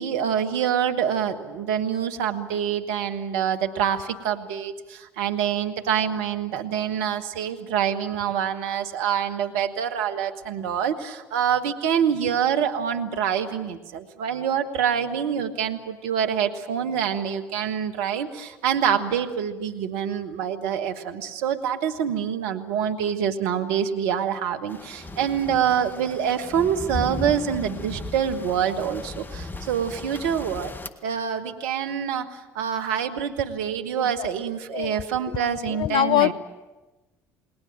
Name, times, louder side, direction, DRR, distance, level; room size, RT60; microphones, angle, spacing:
voice 1, 0.0-30.7 31.0-36.3, right 8 dB, 70° right, 6 dB, 1.6 m, -26 dB
sound 1, 24.7-30.9, left 2 dB, 20° left, 1.8 m, -36 dB
voice 2, 35.3-36.3, left 13 dB, 50° left, 20 dB, 0.7 m, -24 dB
28.5 x 20.0 x 7.5 m, 1.1 s
hypercardioid pair, 55°, 9 cm